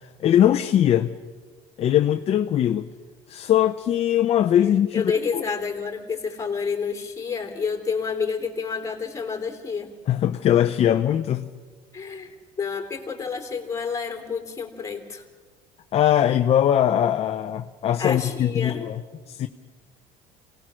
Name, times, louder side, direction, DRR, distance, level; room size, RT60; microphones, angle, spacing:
voice 1, 0.2-1.1 1.8-2.9 3.3-5.4 10.1-11.5 15.9-19.0 19.3-19.5, left 11 dB, 40° left, 0.7 m, -21 dB
voice 2, 4.6-9.9 11.9-15.2 18.0-18.8, left 5 dB, 20° left, 3.1 m, -29 dB
26.0 x 18.5 x 6.3 m
cardioid pair, 130°, 16 cm